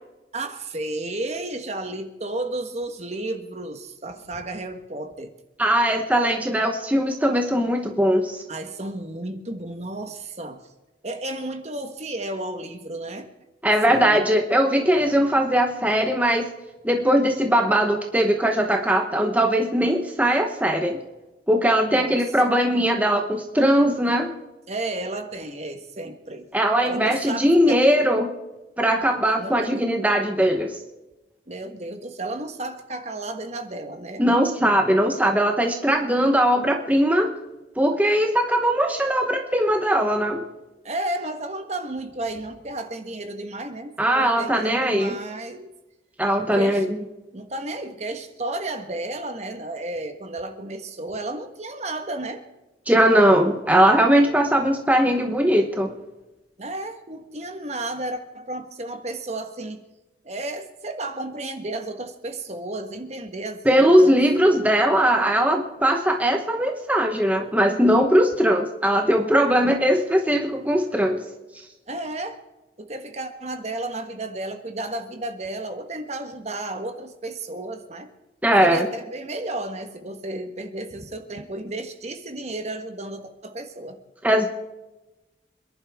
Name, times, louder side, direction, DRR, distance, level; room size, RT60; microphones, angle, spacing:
voice 1, 0.3-5.3 8.5-10.6 11.0-13.3 13.9-14.2 21.8-22.5 24.7-26.5 26.8-27.8 29.4-29.7 31.5-34.3 40.8-45.7 46.4-46.8 47.3-52.4 56.6-59.8 60.2-64.2 71.9-72.4 72.8-78.1 78.6-84.0, right 2 dB, 35° right, 7 dB, 1.4 m, -33 dB
voice 2, 5.6-8.4 13.6-16.5 16.8-21.0 21.5-24.3 26.5-28.3 28.8-30.8 34.2-37.3 37.8-40.4 44.0-45.2 46.2-47.0 52.9-55.9 63.6-71.2 78.4-78.9 84.2-84.5, equal, 10° right, 3 dB, 1.0 m, -20 dB
27.5 x 11.0 x 3.6 m, 1.1 s
head